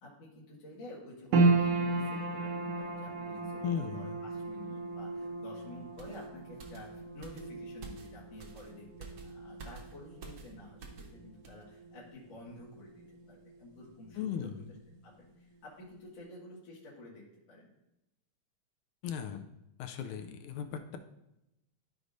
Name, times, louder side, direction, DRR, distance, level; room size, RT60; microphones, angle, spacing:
voice 1, 0.0-2.5 2.8-14.5 15.0-17.7, left 2 dB, 60° left, -7 dB, 2.8 m, -51 dB
sound 1, 1.3-13.7 14.0-14.9 15.4-15.5, right 3 dB, 70° right, 1.7 m, -34 dB
voice 2, 3.6-4.2 14.2-14.7 19.0-19.5 19.8-21.0, left 8 dB, 80° left, 5 dB, 2.0 m, -37 dB
sound 2, 6.0-11.2 11.4-11.6, right 4 dB, 85° right, 1.0 m, -50 dB
13.5 x 4.7 x 2.6 m, 0.89 s
omnidirectional pair, 3.5 m